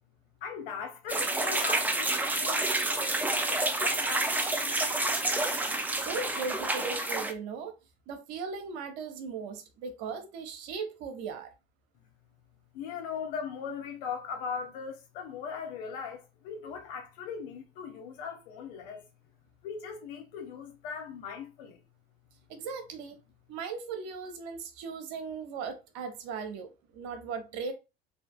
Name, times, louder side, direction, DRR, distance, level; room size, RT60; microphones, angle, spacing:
voice 1, 0.4-5.2 12.7-19.0 19.6-21.8, left 6 dB, 60° left, 0.9 m, -40 dB
sound 1, 1.1-7.3, right 2 dB, 5° right, 0.4 m, -29 dB
voice 2, 5.9-7.8 8.1-11.5 22.5-23.2 23.5-27.7, right 5 dB, 55° right, 0.8 m, -38 dB
3.5 x 2.8 x 2.3 m
figure-of-eight pair, 65°, 31 cm